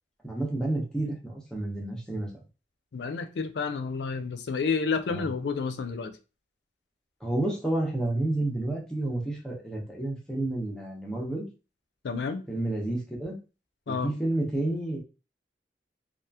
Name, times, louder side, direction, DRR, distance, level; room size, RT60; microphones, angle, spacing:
voice 1, 0.2-2.4 5.1-5.3 7.2-11.5 12.5-13.4 13.9-15.0, right 2 dB, 5° left, -2 dB, 0.7 m, -30 dB
voice 2, 2.9-6.1 12.0-12.4 13.9-14.1, left 5 dB, 75° left, 9 dB, 0.4 m, -30 dB
2.8 x 2.3 x 2.3 m, 0.31 s
head